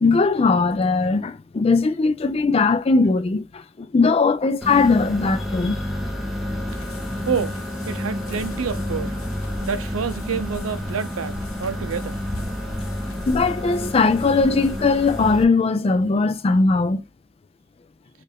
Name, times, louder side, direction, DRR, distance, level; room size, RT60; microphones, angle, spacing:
voice 1, 0.0-5.8 13.3-17.0, left 4 dB, 30° left, 0.3 m, -19 dB
sound 1, 4.6-15.4, left 1 dB, ahead, 0.7 m, -30 dB
sound 2, 6.7-15.3, left 2 dB, 90° left, 0.8 m, -40 dB
voice 2, 7.3-7.6 7.9-9.2 9.6-12.2, right 6 dB, 80° right, 0.6 m, -28 dB
4.4 x 2.5 x 3.4 m
head